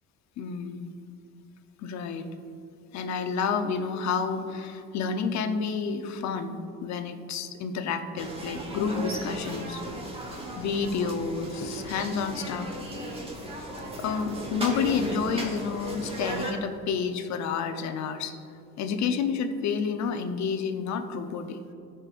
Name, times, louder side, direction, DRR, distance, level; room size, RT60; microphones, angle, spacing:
voice 1, 0.4-0.9 1.8-2.3 2.9-9.8 10.5-12.7 14.0-18.4 18.8-21.6, left 5 dB, 60° left, 7 dB, 0.7 m, -30 dB
sound 1, 8.2-16.5, right 1 dB, 20° right, 1.2 m, -36 dB
13.5 x 5.3 x 2.5 m, 2.6 s
cardioid pair, 115°, 31 cm